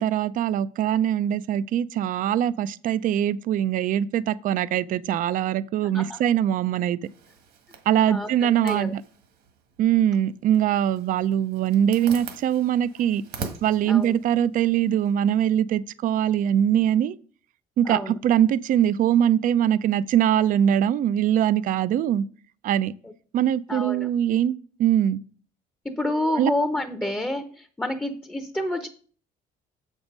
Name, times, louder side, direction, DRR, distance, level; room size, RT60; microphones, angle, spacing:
voice 1, 0.0-7.0 7.9-9.0 9.8-13.2 13.6-17.2 17.8-22.2 22.6-22.9 23.3-25.2 26.4-26.5, right 10 dB, 55° right, 0.4 m, -22 dB
voice 2, 5.8-6.2 8.1-8.3 8.6-9.0 13.9-14.1 17.8-18.1 23.7-24.1 25.8-28.9, left 1 dB, 10° left, 0.7 m, -28 dB
Zipper (clothing), 7.0-15.2, right 5 dB, 75° right, 1.5 m, -43 dB
7.0 x 5.4 x 5.2 m
cardioid pair, 110°, 17 cm